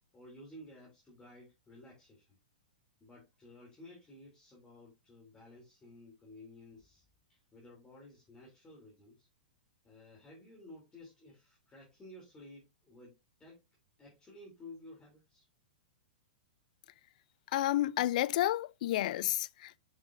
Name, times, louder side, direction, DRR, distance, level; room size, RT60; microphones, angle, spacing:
voice 1, 0.1-2.3 3.0-7.0 7.3-9.3 9.8-13.6 14.0-15.4, left 1 dB, 15° left, 3.3 m, -54 dB
voice 2, 17.5-19.8, left 14 dB, 55° left, 0.4 m, -31 dB
7.4 x 6.3 x 2.6 m
hypercardioid pair, 120°, 5 cm